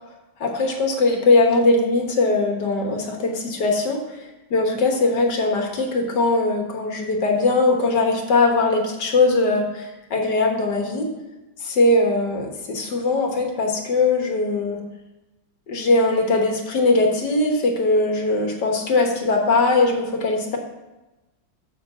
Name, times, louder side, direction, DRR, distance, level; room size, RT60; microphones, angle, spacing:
voice 1, 0.4-11.1 11.6-14.8 15.7-20.6, left 3 dB, 70° left, 2 dB, 1.9 m, -20 dB
7.1 x 6.0 x 6.9 m, 1.1 s
omnidirectional pair, 2.0 m